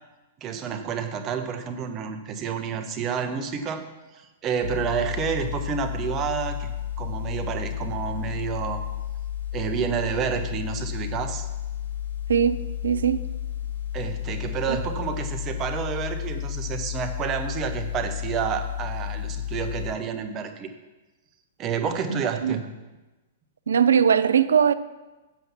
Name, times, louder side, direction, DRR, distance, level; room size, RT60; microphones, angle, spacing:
voice 1, 0.4-3.8 4.1-8.8 9.5-11.5 13.9-20.7 21.6-22.6, right 7 dB, 30° right, 1.0 m, -29 dB
sound 1, 4.6-19.9, left 11 dB, 70° left, 2.5 m, -32 dB
voice 2, 12.3-13.2 14.7-14.8 22.1-22.6 23.7-24.7, right 8 dB, 70° right, 0.4 m, -21 dB
7.7 x 7.1 x 5.8 m
figure-of-eight pair, 105°, 0 cm